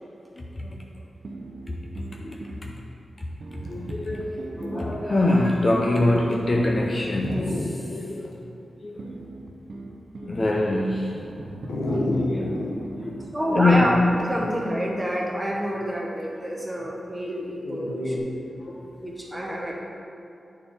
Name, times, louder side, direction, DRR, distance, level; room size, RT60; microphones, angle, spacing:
voice 1, 0.4-1.0 1.7-1.9 2.2-2.8 3.5-8.5 8.8-9.1 10.2-12.7 12.9-14.0 18.4-19.1 19.5-19.7, left 2 dB, 30° left, 0 dB, 0.4 m, -26 dB
sound 1, 1.2-2.7 3.4-6.6 9.0-10.4 11.1-14.3, right 2 dB, 50° right, 0.7 m, -39 dB
Dog, 4.2-4.3 4.6-4.9 5.5-5.6 6.3-6.4 7.2-7.7 8.3-8.4 11.7-12.7 14.2-14.7 17.6-18.2, left 1 dB, 80° left, 0.9 m, -28 dB
voice 2, 13.3-13.9 14.3-18.4 19.0-19.7, equal, 10° right, -3 dB, 0.9 m, -28 dB
9.4 x 4.4 x 3.5 m, 2.7 s
wide cardioid pair, 160°, 0 cm